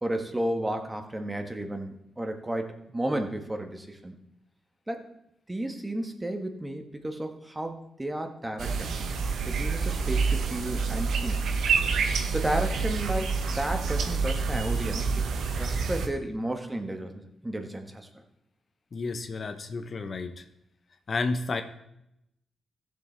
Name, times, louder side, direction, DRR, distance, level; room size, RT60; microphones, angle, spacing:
voice 1, 0.0-4.2 4.9-5.1 5.5-8.9 9.4-11.5 12.3-15.2 15.5-18.1, right 1 dB, 20° right, 5 dB, 1.6 m, -33 dB
sound 1, 8.6-16.1, right 5 dB, 75° right, 0.9 m, -27 dB
voice 2, 18.9-20.4 21.1-21.6, left 3 dB, 55° left, 8 dB, 0.9 m, -31 dB
15.0 x 6.9 x 3.4 m, 0.80 s
supercardioid pair, 45°, 0 cm